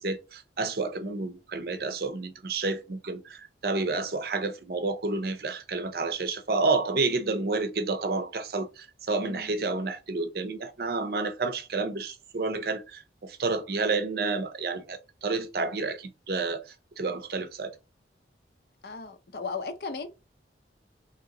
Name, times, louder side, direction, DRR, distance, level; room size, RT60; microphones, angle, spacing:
voice 1, 0.0-17.7, right 3 dB, 55° right, 0.5 m, -30 dB
voice 2, 18.8-20.1, left 4 dB, 60° left, 0.6 m, -36 dB
2.9 x 2.9 x 3.8 m
head